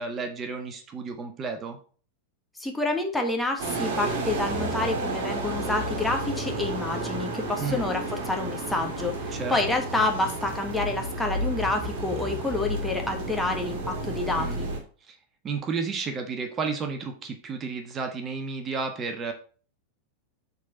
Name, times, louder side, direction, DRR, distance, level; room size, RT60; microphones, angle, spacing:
voice 1, 0.0-1.8 7.6-7.8 9.3-9.6 14.3-14.6 15.0-15.2 15.4-19.3, right 4 dB, 25° right, 6 dB, 1.2 m, -32 dB
voice 2, 2.6-14.7, left 2 dB, 5° left, 2 dB, 1.4 m, -28 dB
sound 1, 3.6-14.8, right 2 dB, 50° right, 2.4 m, -31 dB
7.1 x 4.3 x 6.0 m, 0.41 s
figure-of-eight pair, 90°, 0 cm